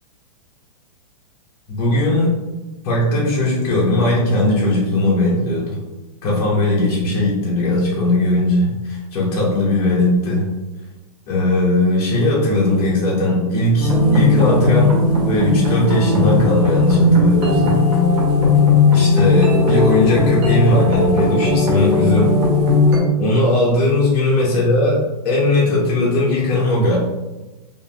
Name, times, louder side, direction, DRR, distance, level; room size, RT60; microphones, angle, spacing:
voice 1, 1.7-2.3 2.8-5.8 6.2-10.5 11.3-17.8 18.9-22.4 23.2-27.0, left 1 dB, 35° left, -6 dB, 0.7 m, -18 dB
sound 1, 13.8-23.0, left 3 dB, 25° right, 0.6 m, -16 dB
2.9 x 2.5 x 2.2 m, 1.1 s
hypercardioid pair, 150°, 20 cm